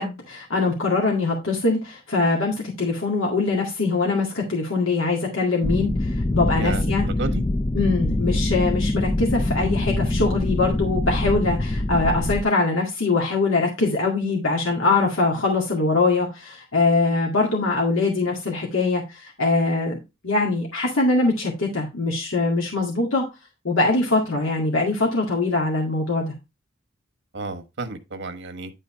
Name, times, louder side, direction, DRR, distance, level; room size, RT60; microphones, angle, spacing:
voice 1, 0.0-7.1 7.8-20.0 20.2-23.3 23.6-26.3, left 3 dB, 75° left, 2.0 m, -22 dB
sound 1, 5.6-12.4, left 1 dB, 20° left, 0.4 m, -24 dB
voice 2, 6.6-7.4 27.3-28.7, right 3 dB, 60° right, 1.1 m, -32 dB
10.5 x 4.1 x 4.3 m
head